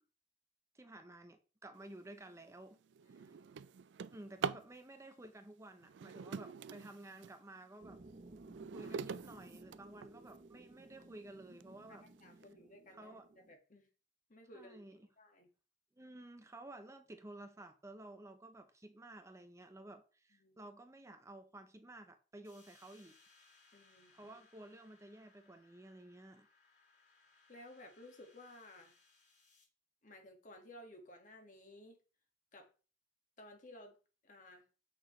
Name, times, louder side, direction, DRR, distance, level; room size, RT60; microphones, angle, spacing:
voice 1, 0.7-2.8 3.1-3.4 4.1-8.0 8.7-12.1 12.9-13.3 14.5-15.0 16.0-23.2 24.1-26.5, right 1 dB, 15° right, 0.6 m, -53 dB
Drawer open or close, 2.1-2.3 2.8-4.7 5.8-7.4 7.9-10.4 11.0-11.1 11.6-11.7 12.1-12.4, right 6 dB, 75° right, 0.4 m, -44 dB
sound 1, 7.8-13.5, right 2 dB, 45° right, 0.8 m, -57 dB
voice 2, 11.9-13.9 14.3-15.5 20.3-20.7 23.7-24.4 27.5-29.0 30.0-32.0 32.5-32.7 33.4-34.0 34.2-34.6, left 1 dB, 45° left, 1.8 m, -57 dB
sound 2, 22.4-29.6, left 4 dB, 65° left, 3.8 m, -68 dB
7.8 x 6.5 x 3.1 m
head